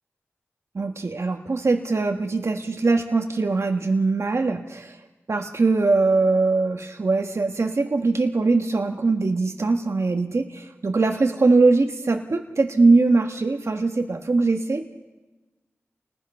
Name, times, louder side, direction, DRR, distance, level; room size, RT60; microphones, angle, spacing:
voice 1, 0.7-5.0 5.3-14.9, right 3 dB, 65° right, 3 dB, 1.4 m, -21 dB
29.0 x 20.0 x 5.5 m, 1.1 s
cardioid pair, 45°, 5 cm